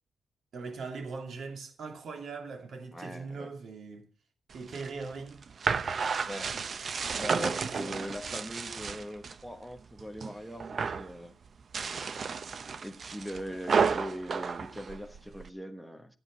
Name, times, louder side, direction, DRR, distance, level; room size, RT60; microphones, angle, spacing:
voice 1, 0.5-4.1 4.5-5.9 7.6-8.2, right 4 dB, 60° right, 2.8 m, -41 dB
voice 2, 2.9-3.5 6.3-6.5 7.2-11.3 12.8-16.2, equal, ahead, 1.2 m, -41 dB
sound 1, 4.5-9.4 9.8-10.3 10.6-11.1 11.6-15.5, right 5 dB, 40° right, 0.7 m, -32 dB
13.5 x 8.1 x 5.5 m
wide cardioid pair, 145°, 0 cm